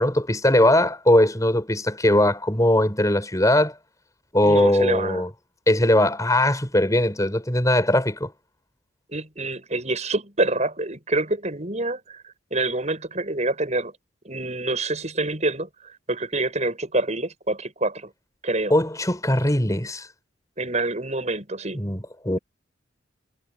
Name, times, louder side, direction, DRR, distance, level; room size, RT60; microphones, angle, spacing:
voice 1, 0.0-3.7 4.3-5.3 5.7-8.3 18.7-20.1 21.7-22.4, left 1 dB, 15° left, 5.3 m, -20 dB
voice 2, 4.4-5.3 9.1-12.2 12.5-13.9 14.2-15.7 16.1-18.1 18.4-18.7 20.6-21.8, right 2 dB, 35° right, 8.0 m, -26 dB
head